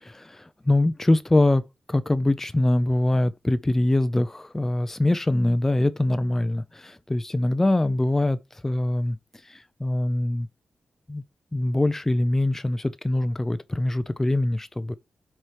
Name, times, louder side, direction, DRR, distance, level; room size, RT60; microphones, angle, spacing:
voice 1, 0.0-1.6 1.9-8.4 8.6-9.2 9.5-10.5 11.1-11.2 11.5-14.9, left 1 dB, 15° left, 0.4 m, -23 dB
4.8 x 4.4 x 4.6 m
cardioid pair, 60°, 2 cm